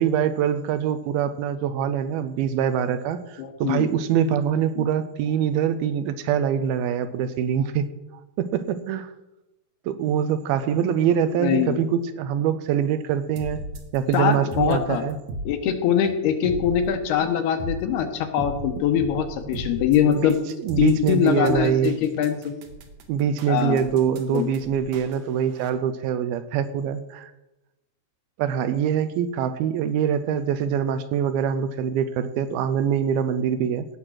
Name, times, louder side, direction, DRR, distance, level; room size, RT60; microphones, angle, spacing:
voice 1, 0.0-7.9 8.4-9.1 9.9-13.6 13.9-15.2 20.1-20.4 20.6-22.0 23.1-27.3 28.4-33.9, right 8 dB, 80° right, 10 dB, 2.4 m, -24 dB
voice 2, 3.4-3.9 4.8-4.9 11.4-11.8 14.1-15.0 15.5-20.4 20.8-22.5 23.5-23.8 24.3-24.5, left 9 dB, 80° left, 6 dB, 3.0 m, -23 dB
sound 1, 13.4-25.7, right 1 dB, 65° right, 2.1 m, -36 dB
17.0 x 5.9 x 6.3 m, 0.97 s
omnidirectional pair, 4.6 m